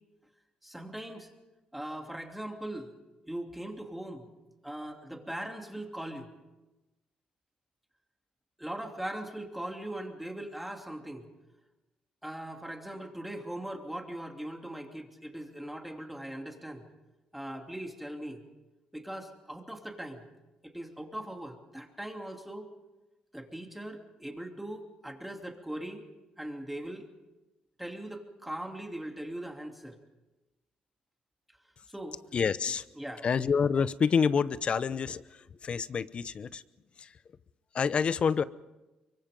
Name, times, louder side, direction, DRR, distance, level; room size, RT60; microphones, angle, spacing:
voice 1, 0.6-1.3 1.7-2.9 3.3-4.3 4.6-6.3 8.6-11.2 12.2-16.8 17.3-18.4 18.9-20.2 20.6-22.7 23.3-26.0 26.4-27.1 27.8-30.0 31.9-32.2 32.9-33.3, right 1 dB, 5° right, 3 dB, 3.0 m, -40 dB
voice 2, 32.3-32.8 33.2-35.2 35.6-36.6 37.0-37.1 37.7-38.4, left 6 dB, 45° left, 16 dB, 0.8 m, -27 dB
24.0 x 23.5 x 5.3 m, 1.1 s
cardioid pair, 90°, 3 cm